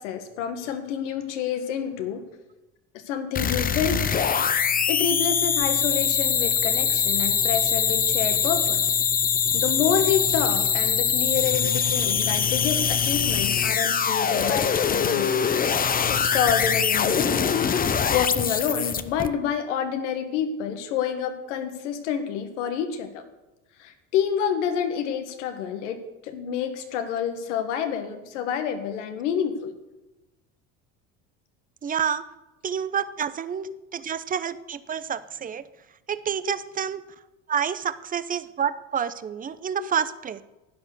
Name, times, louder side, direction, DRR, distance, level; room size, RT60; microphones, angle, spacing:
voice 1, 0.0-2.2 2.9-4.0 4.9-8.9 9.5-15.3 16.1-17.7 18.1-23.2 23.8-29.7 33.7-33.8 36.4-36.5 39.8-39.9, left 8 dB, 85° left, 7 dB, 1.7 m, -28 dB
sound 1, 3.4-19.3, left 7 dB, 25° left, 0.7 m, -23 dB
voice 2, 31.8-32.2 32.6-35.6 36.1-37.0 37.5-40.4, right 8 dB, 25° right, 14 dB, 0.7 m, -28 dB
11.0 x 9.5 x 6.7 m, 1.0 s
supercardioid pair, 85°, 35 cm